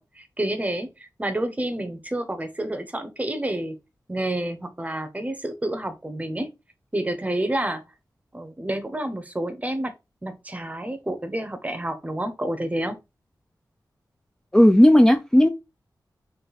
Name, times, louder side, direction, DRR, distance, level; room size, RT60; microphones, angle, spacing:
voice 1, 0.0-3.8 4.1-6.5 6.9-7.8 8.3-9.9 10.2-13.0, right 1 dB, 20° right, 0.7 m, -29 dB
voice 2, 14.5-15.5, left 1 dB, 5° left, 0.4 m, -14 dB
3.9 x 2.5 x 4.0 m
wide cardioid pair, 100°, 7 cm